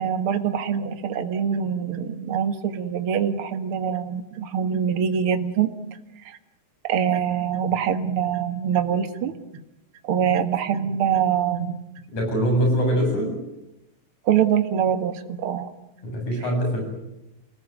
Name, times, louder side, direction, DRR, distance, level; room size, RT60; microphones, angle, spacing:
voice 1, 0.0-5.7 6.3-6.4 6.8-9.6 10.0-11.8 14.3-15.7, right 8 dB, 50° right, 8 dB, 2.3 m, -24 dB
voice 2, 12.1-13.4 16.0-16.8, equal, 80° left, 2 dB, 9.2 m, -23 dB
28.0 x 19.5 x 9.3 m, 0.90 s
omnidirectional pair, 3.4 m